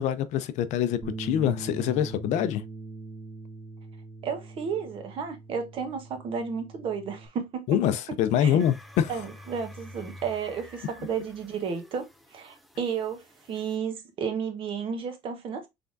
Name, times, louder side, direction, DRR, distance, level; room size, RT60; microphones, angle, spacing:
voice 1, 0.0-2.6 7.7-9.1, left 10 dB, 65° left, 0.6 m, -25 dB
Bass guitar, 1.0-7.3, right 3 dB, 25° right, 1.3 m, -41 dB
voice 2, 4.2-7.6 8.4-8.6 9.1-15.7, right 6 dB, 45° right, 1.1 m, -32 dB
sound 1, 8.6-13.8, equal, ahead, 0.4 m, -49 dB
5.6 x 3.5 x 2.6 m
cardioid pair, 175°, 13 cm